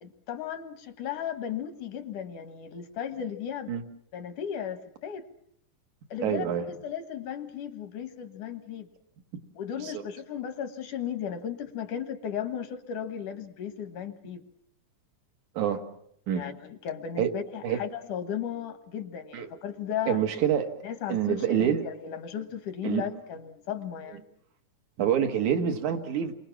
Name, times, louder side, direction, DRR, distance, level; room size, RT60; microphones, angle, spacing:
voice 1, 0.0-3.7 4.1-5.3 6.1-8.9 9.5-14.4 16.3-20.2 20.8-24.2, left 8 dB, 80° left, 9 dB, 2.9 m, -35 dB
voice 2, 6.2-6.6 9.8-10.0 15.6-15.8 16.3-16.4 17.2-17.3 17.6-17.8 19.3-19.5 20.1-20.7 21.1-21.8 22.8-23.0 25.0-26.3, right 9 dB, 75° right, 6 dB, 3.0 m, -26 dB
29.5 x 23.5 x 6.0 m, 0.70 s
omnidirectional pair, 3.5 m